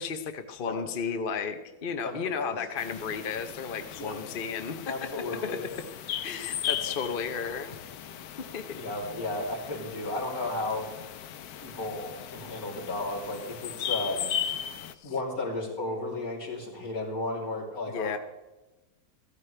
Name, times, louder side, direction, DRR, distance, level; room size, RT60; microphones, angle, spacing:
voice 1, 0.0-5.6 6.2-7.8 8.4-8.8 14.9-15.1 17.9-18.2, left 6 dB, 45° left, 7 dB, 0.8 m, -34 dB
voice 2, 2.0-2.6 4.0-4.2 4.9-5.7 8.8-10.9 11.5-14.3 15.0-18.2, left 2 dB, 70° left, -5 dB, 3.7 m, -34 dB
sound 1, 2.8-14.9, left 10 dB, 90° left, 1.2 m, -37 dB
15.0 x 13.5 x 3.3 m, 1.0 s
omnidirectional pair, 1.6 m